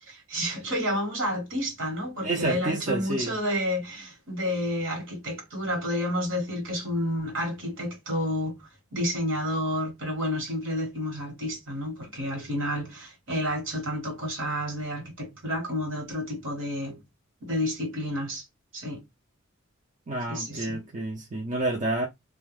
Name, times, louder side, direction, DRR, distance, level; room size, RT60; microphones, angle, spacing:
voice 1, 0.1-17.0 17.4-18.4 18.7-19.0 20.3-20.8, equal, 60° right, 1.2 m, -30 dB
voice 2, 2.2-3.4 20.1-22.1, right 2 dB, 35° right, 0.5 m, -29 dB
2.2 x 2.2 x 3.2 m
head